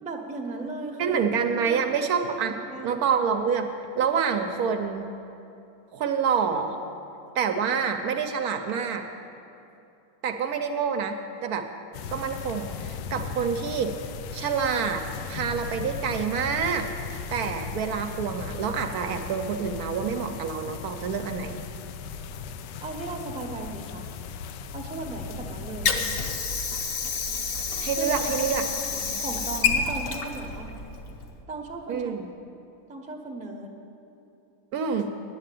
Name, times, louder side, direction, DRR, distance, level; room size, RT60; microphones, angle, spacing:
voice 1, 0.0-1.2 1.6-1.9 2.3-3.1 22.8-24.1 24.7-26.0 28.0-30.7 31.5-32.1 32.9-33.7, right 2 dB, 5° right, 1 dB, 0.6 m, -37 dB
voice 2, 1.0-2.6 2.8-3.7 4.0-5.1 5.9-6.8 7.3-9.0 10.2-11.7 12.1-13.9 14.3-16.9 17.3-21.6 27.8-28.6 31.9-32.3 34.7-35.1, right 6 dB, 70° right, 6 dB, 1.1 m, -27 dB
sound 1, 11.9-26.4, left 6 dB, 90° left, 1.2 m, -37 dB
Water / Sink (filling or washing), 25.4-31.4, left 5 dB, 60° left, 1.2 m, -29 dB
9.9 x 7.6 x 9.0 m, 2.8 s
omnidirectional pair, 1.8 m